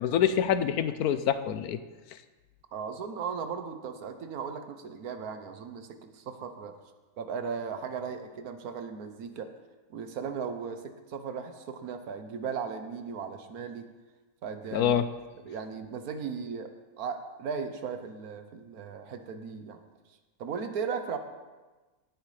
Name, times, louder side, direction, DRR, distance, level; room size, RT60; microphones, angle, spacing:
voice 1, 0.0-1.8 14.7-15.1, left 9 dB, 85° left, 11 dB, 1.2 m, -26 dB
voice 2, 2.7-6.7 7.2-9.5 9.9-10.8 11.1-13.9 14.4-14.9 15.4-16.7 17.0-19.8 20.4-21.2, right 6 dB, 90° right, 8 dB, 1.4 m, -37 dB
17.5 x 9.2 x 3.3 m, 1.2 s
omnidirectional pair, 1.5 m